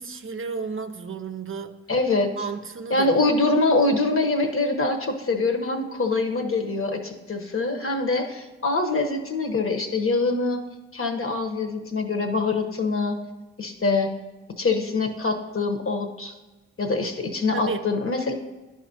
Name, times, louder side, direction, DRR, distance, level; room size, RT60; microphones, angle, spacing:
voice 1, 0.0-1.9 2.4-3.2 17.5-17.8, right 5 dB, 45° right, 7 dB, 0.6 m, -33 dB
voice 2, 1.9-2.3 2.9-10.6 10.9-13.2 13.6-14.2 14.6-16.3 16.8-18.3, left 3 dB, 45° left, 5 dB, 1.1 m, -24 dB
11.0 x 4.9 x 2.8 m, 1.2 s
supercardioid pair, 45°, 30 cm